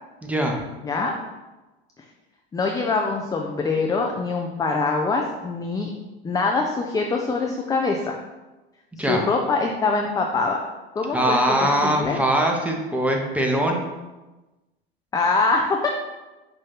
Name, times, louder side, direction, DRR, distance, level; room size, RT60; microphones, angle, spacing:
voice 1, 0.2-0.6 9.0-9.2 11.1-13.8, right 1 dB, 5° right, 1 dB, 0.8 m, -22 dB
voice 2, 2.5-5.9 6.2-8.2 9.0-10.6 11.0-12.2 15.1-15.9, left 3 dB, 10° left, 1 dB, 0.4 m, -24 dB
5.5 x 2.6 x 3.5 m, 1.1 s
hypercardioid pair, 80°, 30 cm